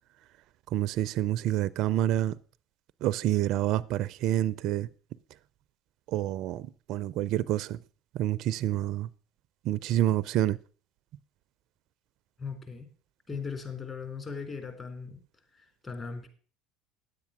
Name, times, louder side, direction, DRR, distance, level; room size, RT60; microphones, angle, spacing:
voice 1, 0.7-2.4 3.0-4.9 6.1-7.8 8.1-9.1 9.6-10.6, right 13 dB, 60° right, 0.4 m, -28 dB
voice 2, 12.4-12.9 13.3-15.2 15.5-16.3, left 5 dB, 25° left, 3.8 m, -38 dB
9.9 x 8.4 x 5.9 m
hypercardioid pair, 80°, 0 cm